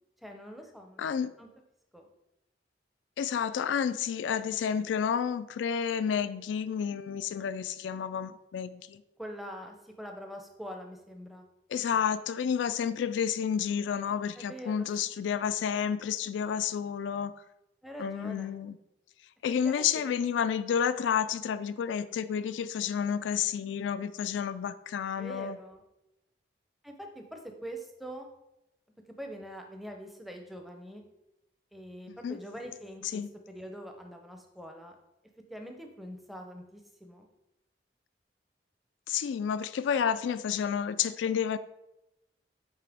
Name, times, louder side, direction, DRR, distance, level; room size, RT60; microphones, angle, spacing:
voice 1, 0.2-1.1 1.4-1.5 1.9-2.1 9.2-11.5 14.4-14.9 15.3-15.4 17.8-18.6 19.6-19.9 25.2-25.8 26.8-28.3 29.2-31.0 31.7-33.2 33.5-34.9 35.5-37.3, equal, ahead, 3 dB, 0.6 m, -44 dB
voice 2, 1.0-1.3 3.2-9.0 11.7-17.3 18.0-18.8 19.4-25.6 32.1-32.4 33.0-33.3 39.1-41.6, left 7 dB, 90° left, 13 dB, 0.3 m, -30 dB
8.7 x 3.3 x 3.5 m, 0.89 s
head